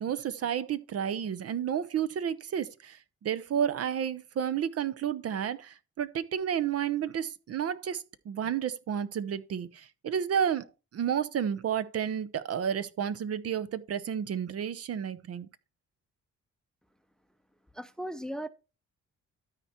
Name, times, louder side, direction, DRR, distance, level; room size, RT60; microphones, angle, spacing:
voice 1, 0.0-10.7 10.9-15.5, right 8 dB, 55° right, 0.7 m, -31 dB
voice 2, 17.7-18.5, equal, ahead, 0.6 m, -37 dB
13.0 x 4.4 x 4.4 m
cardioid pair, 90°, 30 cm